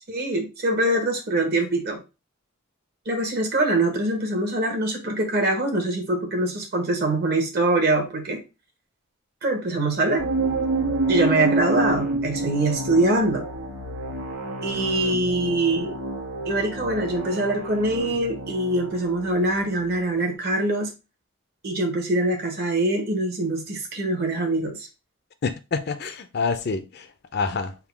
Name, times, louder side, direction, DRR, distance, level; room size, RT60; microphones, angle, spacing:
voice 1, 0.1-2.0 3.1-8.4 9.4-10.2 11.1-13.5 14.6-16.0 16.5-20.9 21.6-24.9, right 2 dB, 50° right, 1.1 m, -23 dB
sound 1, 10.2-20.1, right 2 dB, 90° right, 1.2 m, -29 dB
voice 2, 25.4-27.8, left 4 dB, 50° left, 0.5 m, -27 dB
3.7 x 2.3 x 4.5 m
head